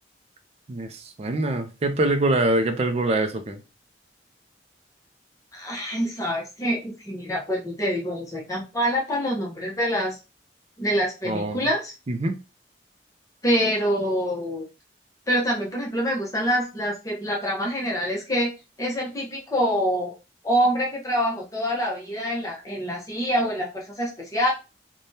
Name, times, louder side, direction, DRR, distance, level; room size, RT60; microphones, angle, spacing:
voice 1, 0.7-3.6 11.3-11.7 12.1-12.4, right 2 dB, 35° right, 0.5 m, -24 dB
voice 2, 5.5-10.2 10.8-11.9 13.4-14.7 15.3-18.5 18.8-20.1 20.4-24.5, equal, 20° left, 0.8 m, -25 dB
3.3 x 2.2 x 2.7 m
head